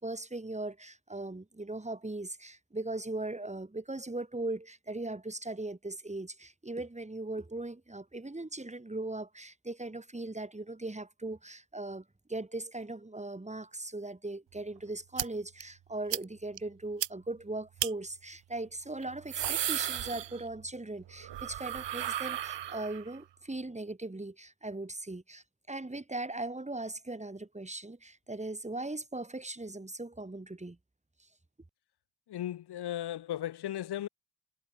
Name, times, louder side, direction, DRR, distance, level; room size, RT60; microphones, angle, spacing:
voice 1, 0.0-30.8, right 2 dB, 15° right, 4.1 m, -39 dB
sound 1, 15.2-15.3 15.6-15.7 16.1-16.2 16.6-16.7 17.0-17.1 17.8-17.9 19.0-20.7 21.0-23.2, right 11 dB, 65° right, 3.7 m, -34 dB
voice 2, 32.3-34.1, left 12 dB, 55° left, 1.4 m, -36 dB
hypercardioid pair, 45°, 47 cm